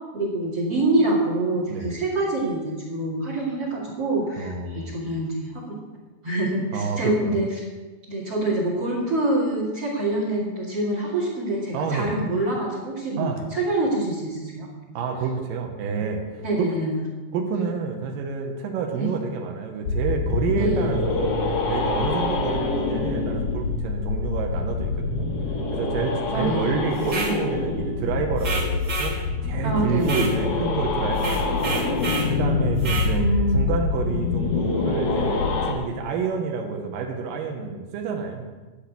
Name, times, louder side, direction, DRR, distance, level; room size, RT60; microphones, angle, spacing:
voice 1, 0.1-5.8 6.2-7.6 8.1-15.0 16.4-17.0 18.9-19.1 20.5-20.9 26.3-26.7 29.6-30.2 33.1-33.6, right 2 dB, 40° right, -3 dB, 2.3 m, -26 dB
voice 2, 4.4-4.9 6.7-7.4 11.7-12.1 13.2-13.4 14.9-16.7 17.3-25.3 25.7-31.8 32.3-33.2 33.5-38.5, right 5 dB, 75° right, 2 dB, 2.1 m, -29 dB
sound 1, 19.9-35.7, left 3 dB, 65° left, 1.6 m, -25 dB
sound 2, 27.0-27.4 28.4-29.2 30.0-30.4 31.2-32.3 32.8-33.1, right 3 dB, 55° right, 1.2 m, -29 dB
12.5 x 5.6 x 8.4 m, 1.3 s
omnidirectional pair, 5.5 m